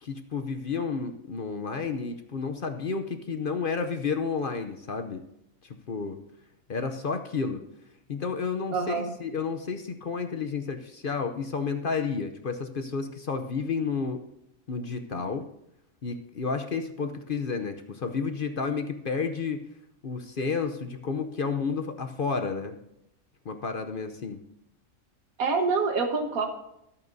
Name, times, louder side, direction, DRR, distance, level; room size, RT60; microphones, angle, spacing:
voice 1, 0.0-5.2 5.6-6.2 6.7-7.6 8.1-14.2 14.7-15.5 16.0-19.7 20.0-22.8 23.4-24.4, left 5 dB, 45° left, 7 dB, 0.8 m, -31 dB
voice 2, 8.7-9.1 25.4-26.5, right 4 dB, 80° right, 5 dB, 1.8 m, -26 dB
24.0 x 8.6 x 2.7 m, 0.81 s
omnidirectional pair, 1.5 m